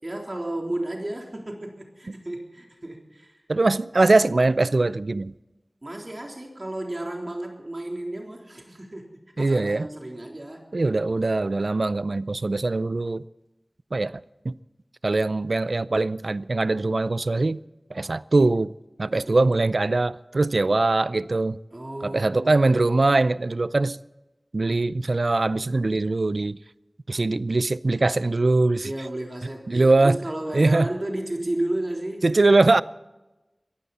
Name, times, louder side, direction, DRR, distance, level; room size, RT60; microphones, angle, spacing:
voice 1, 0.0-3.4 5.8-10.6 19.1-19.6 21.7-22.9 28.8-32.3, right 1 dB, 45° right, 3.6 m, -33 dB
voice 2, 3.5-5.3 9.4-9.9 10.7-13.2 13.9-14.5 15.0-17.6 17.9-18.7 19.0-21.6 22.0-24.0 24.5-26.6 27.1-28.9 29.7-30.2 30.5-30.9 32.2-32.8, right 2 dB, 75° right, 0.4 m, -22 dB
22.5 x 15.0 x 4.2 m
wide cardioid pair, 45°, 0 cm